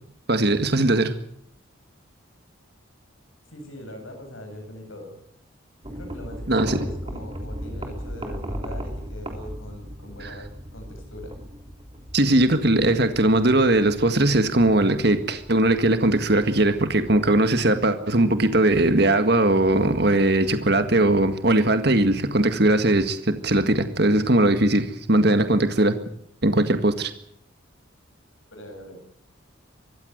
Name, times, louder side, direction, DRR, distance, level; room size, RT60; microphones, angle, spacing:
voice 1, 0.3-1.1 6.5-6.9 12.1-26.0 26.4-27.1, right 1 dB, 50° right, 9 dB, 1.8 m, -20 dB
voice 2, 3.5-5.2 5.9-11.4 28.5-29.0, equal, 80° left, 4 dB, 7.6 m, -41 dB
sound 1, 5.8-17.1, equal, 25° right, 3.5 m, -37 dB
23.5 x 15.5 x 8.1 m, 0.69 s
head